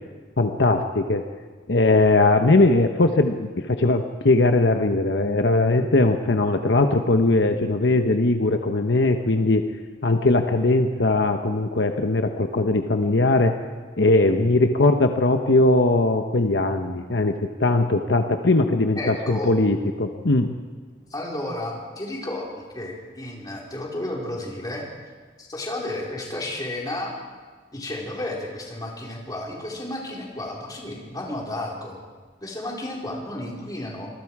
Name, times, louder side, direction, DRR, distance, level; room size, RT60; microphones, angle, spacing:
voice 1, 0.4-1.2 1.7-9.6 10.0-13.6 14.0-17.3 17.6-20.6, left 2 dB, 65° left, 5 dB, 1.1 m, -20 dB
voice 2, 19.0-19.5 21.1-24.9 25.4-27.2 27.7-32.0 32.4-34.1, left 1 dB, 20° left, -3 dB, 4.6 m, -32 dB
26.5 x 21.5 x 4.9 m, 1.4 s
head